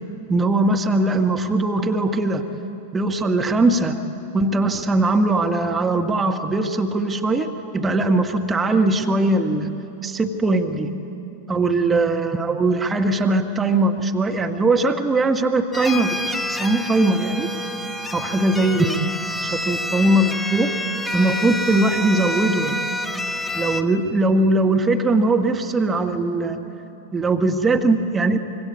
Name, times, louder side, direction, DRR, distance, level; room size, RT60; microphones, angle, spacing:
voice 1, 0.3-2.4 2.9-4.0 4.3-9.8 10.0-10.9 11.5-16.2 16.5-17.5 18.1-19.0 19.4-20.7 21.1-22.7 23.5-26.6 27.1-28.4, right 2 dB, 15° right, 4 dB, 1.2 m, -20 dB
sound 1, 15.7-23.8, left 1 dB, 10° left, 1.1 m, -28 dB
25.5 x 23.0 x 8.5 m, 2.9 s
figure-of-eight pair, 90°, 0 cm